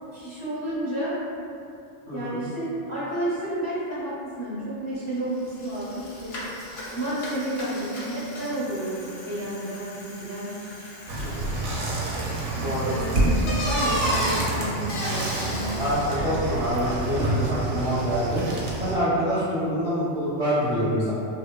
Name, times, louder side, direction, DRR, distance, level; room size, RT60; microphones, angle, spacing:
voice 1, 0.1-1.2 2.1-6.3 6.9-10.6 12.5-16.3, right 1 dB, 35° left, -13 dB, 0.6 m, -31 dB
voice 2, 2.1-2.4 11.2-11.5 12.6-12.9 15.8-18.4 18.8-21.1, equal, 35° right, -13 dB, 0.6 m, -26 dB
Bicycle, 5.1-5.2 5.5-16.2, equal, 65° left, 0.8 m, -34 dB
sound 1, 11.1-19.0, right 2 dB, 85° right, 0.9 m, -28 dB
2.9 x 2.1 x 2.2 m, 2.5 s
omnidirectional pair, 1.2 m